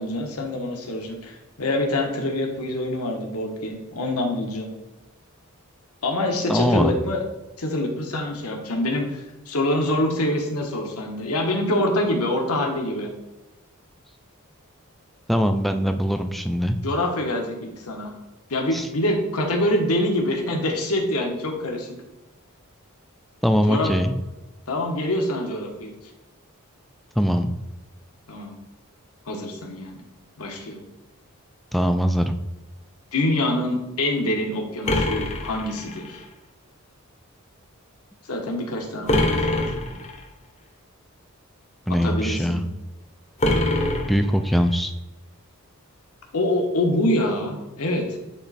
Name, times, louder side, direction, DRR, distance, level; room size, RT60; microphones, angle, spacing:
voice 1, 0.0-4.7 6.0-7.2 7.6-13.1 16.8-18.1 18.5-21.9 23.7-23.9 24.7-25.9 28.3-28.6 29.3-30.0 30.4-30.8 33.1-36.2 38.3-39.8 42.0-42.6 46.3-48.1, left 1 dB, 85° left, 2 dB, 1.1 m, -25 dB
voice 2, 6.5-6.9 15.3-16.8 18.7-18.9 23.4-24.2 27.2-27.5 31.7-32.3 39.2-39.4 41.9-42.6 44.1-44.9, equal, ahead, 7 dB, 0.3 m, -22 dB
sound 1, 34.9-36.2 39.1-40.2 43.4-44.7, left 1 dB, 30° left, 0.8 m, -24 dB
8.7 x 3.1 x 4.1 m, 1.0 s
head